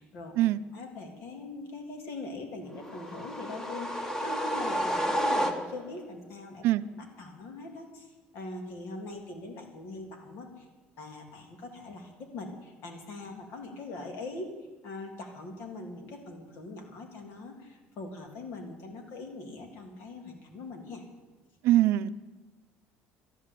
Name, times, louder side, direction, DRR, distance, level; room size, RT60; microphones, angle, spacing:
voice 1, 0.0-0.3 0.7-6.6 6.9-10.7 11.0-14.5 14.8-21.0, left 2 dB, 65° left, 4 dB, 3.1 m, -42 dB
sound 1, 2.8-6.0, equal, 10° left, 1.3 m, -31 dB
voice 2, 21.6-22.1, right 14 dB, 65° right, 14 dB, 0.6 m, -23 dB
12.5 x 11.0 x 8.3 m, 1.2 s
cardioid pair, 130°, 4 cm